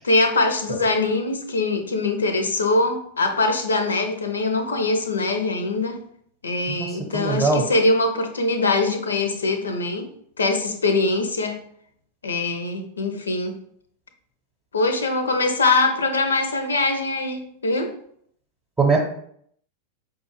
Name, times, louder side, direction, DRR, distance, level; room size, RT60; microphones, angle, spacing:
voice 1, 0.0-6.0 6.4-10.1 10.4-11.6 12.2-13.6 14.7-17.9, left 3 dB, 70° left, 7 dB, 0.6 m, -22 dB
voice 2, 6.7-7.6 18.8-19.0, right 4 dB, 15° right, 0 dB, 0.8 m, -21 dB
5.3 x 2.4 x 3.1 m, 0.66 s
figure-of-eight pair, 90°, 0 cm